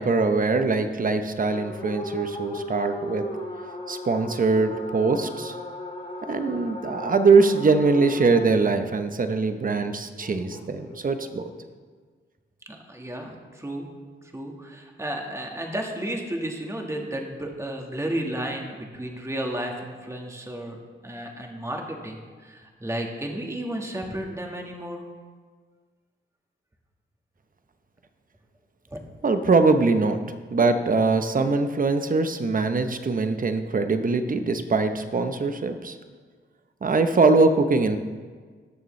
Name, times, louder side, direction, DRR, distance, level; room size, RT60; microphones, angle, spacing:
voice 1, 0.0-3.2 3.9-5.5 6.3-11.5 29.2-30.2 30.5-36.0 36.8-38.0, right 3 dB, 40° right, 8 dB, 0.8 m, -22 dB
sound 1, 1.5-8.5 10.2-11.3, left 1 dB, 40° left, 2.1 m, -36 dB
voice 2, 12.7-13.9 14.3-25.0 28.9-29.0, right 1 dB, 15° right, 1 dB, 1.6 m, -33 dB
17.5 x 6.7 x 3.2 m, 1.5 s
cardioid pair, 70°, 21 cm